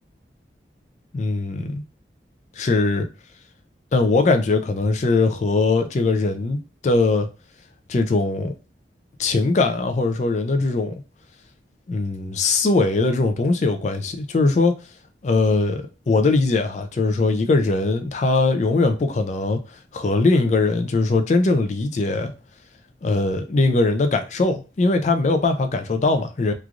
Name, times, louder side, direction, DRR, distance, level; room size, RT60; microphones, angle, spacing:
voice 1, 1.1-1.8 2.6-3.1 3.9-7.3 7.9-8.5 9.2-10.9 11.9-14.8 15.2-19.6 19.9-22.3 23.0-26.5, left 3 dB, 40° left, 0.3 m, -20 dB
3.1 x 2.4 x 2.4 m
head